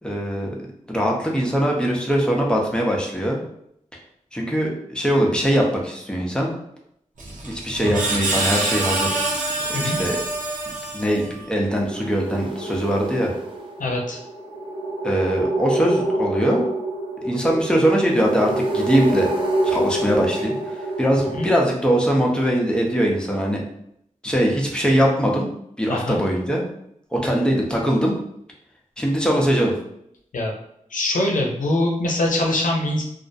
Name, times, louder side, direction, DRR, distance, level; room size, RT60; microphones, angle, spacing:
voice 1, 0.0-0.6 0.9-3.4 4.3-6.5 7.4-9.3 9.7-10.2 10.9-13.3 15.0-16.6 17.2-19.3 19.6-23.6 24.2-25.5 25.8-26.6 27.1-28.1 29.0-29.7, equal, 5° left, -1 dB, 0.6 m, -21 dB
Screech, 7.2-11.5, right 2 dB, 80° right, 0.6 m, -26 dB
sound 1, 11.6-21.5, right 1 dB, 40° right, 0.5 m, -26 dB
voice 2, 13.8-14.2 21.4-21.5 25.9-26.2 30.3-30.5 30.9-33.0, left 1 dB, 85° left, 1 dB, 0.5 m, -23 dB
2.4 x 2.0 x 2.6 m, 0.73 s
wide cardioid pair, 65°, 13 cm